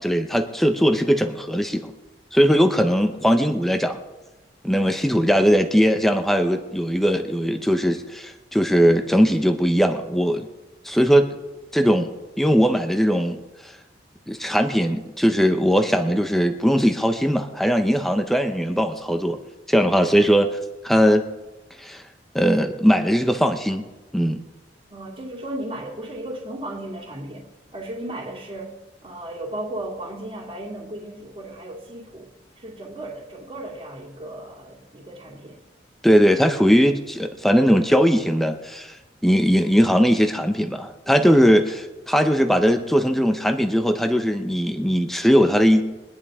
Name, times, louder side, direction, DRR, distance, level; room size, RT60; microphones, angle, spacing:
voice 1, 0.0-1.9 2.3-4.0 4.6-10.5 10.8-11.3 11.7-12.1 12.4-13.4 14.3-19.4 19.7-20.6 20.8-21.2 21.8-22.0 22.3-23.9 24.1-24.4 36.0-38.9 39.2-45.8, equal, ahead, 6 dB, 0.9 m, -19 dB
voice 2, 24.9-27.4 27.7-28.7 29.0-32.3 32.6-35.6, right 1 dB, 30° right, -4 dB, 2.5 m, -35 dB
23.5 x 10.0 x 3.7 m, 1.1 s
head